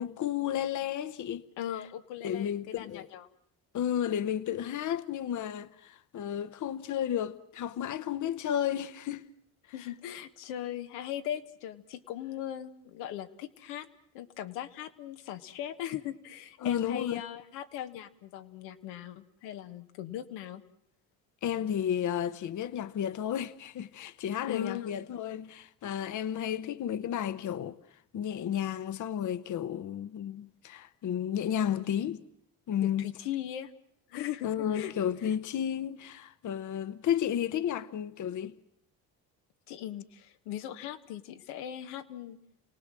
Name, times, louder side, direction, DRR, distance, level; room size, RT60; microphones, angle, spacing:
voice 1, 0.0-1.4 2.2-3.1 3.7-9.3 16.6-17.2 21.4-27.8 28.1-32.2 32.7-33.1 34.4-38.6, left 9 dB, 50° left, 0.9 m, -32 dB
voice 2, 1.6-3.3 9.7-13.9 14.1-20.6 24.5-24.9 31.8-31.9 32.8-33.7 34.1-34.9 35.2-35.3 39.7-42.4, left 11 dB, 90° left, 1.3 m, -39 dB
29.0 x 18.0 x 7.5 m
supercardioid pair, 85°, 38 cm